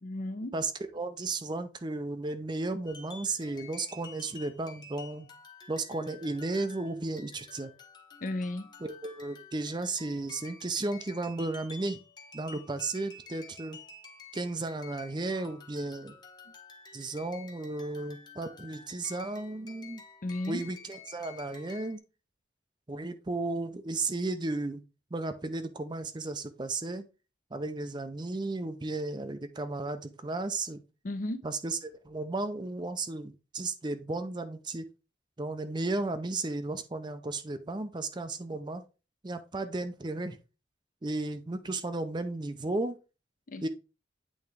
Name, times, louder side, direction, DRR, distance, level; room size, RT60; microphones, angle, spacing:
voice 1, 0.0-0.5 8.2-8.7 20.2-20.6 31.0-31.4 43.5-43.7, left 1 dB, 45° left, 0.6 m, -34 dB
voice 2, 0.5-5.3 5.7-7.7 8.8-12.0 12.3-13.8 14.3-16.2 16.9-20.0 20.5-22.0 22.9-24.8 25.1-27.0 27.5-30.8 31.4-34.9 35.4-38.8 39.2-40.4 41.0-43.0 43.6-43.7, right 2 dB, 25° right, 0.5 m, -34 dB
sound 1, 2.9-22.0, left 4 dB, 25° left, 0.9 m, -51 dB
8.6 x 3.5 x 3.3 m
head